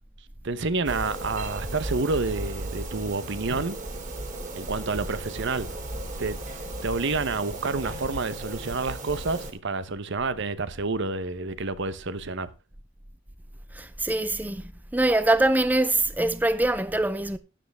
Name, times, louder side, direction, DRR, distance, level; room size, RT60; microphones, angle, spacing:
voice 1, 0.4-3.8 4.6-5.7 6.2-6.4 6.8-12.5, right 3 dB, 65° right, 0.9 m, -29 dB
sound 1, 0.8-9.5, right 1 dB, 40° right, 2.7 m, -35 dB
voice 2, 13.7-14.6 14.9-17.4, right 2 dB, 10° right, 0.5 m, -23 dB
12.0 x 9.7 x 3.5 m
head